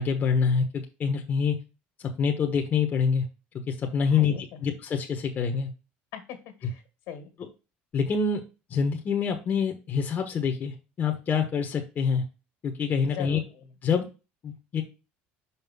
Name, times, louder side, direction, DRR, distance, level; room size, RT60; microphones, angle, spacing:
voice 1, 0.0-1.6 2.2-3.3 3.7-5.7 7.9-8.4 8.7-12.2 12.6-13.4 13.8-14.0 14.4-14.8, left 6 dB, 40° left, 3 dB, 1.2 m, -26 dB
voice 2, 4.1-4.6 6.1-7.3 13.1-13.4, left 9 dB, 70° left, 8 dB, 2.0 m, -40 dB
5.7 x 5.2 x 3.6 m, 0.30 s
supercardioid pair, 115°, 5 cm